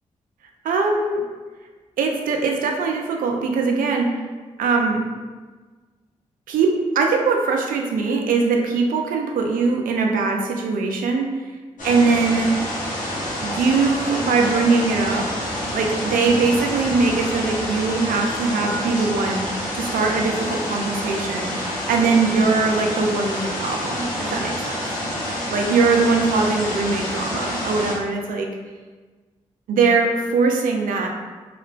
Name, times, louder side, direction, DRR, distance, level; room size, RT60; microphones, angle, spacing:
voice 1, 0.6-1.2 2.0-4.2 4.6-5.0 6.5-11.3 11.8-12.5 13.4-15.3 15.7-19.5 19.7-24.8 25.5-28.5 29.7-31.1, right 4 dB, 70° right, 2 dB, 0.4 m, -21 dB
sound 1, 11.8-27.9, left 1 dB, 60° left, 1.0 m, -28 dB
2.8 x 2.1 x 2.4 m, 1.4 s
supercardioid pair, 40°, 15 cm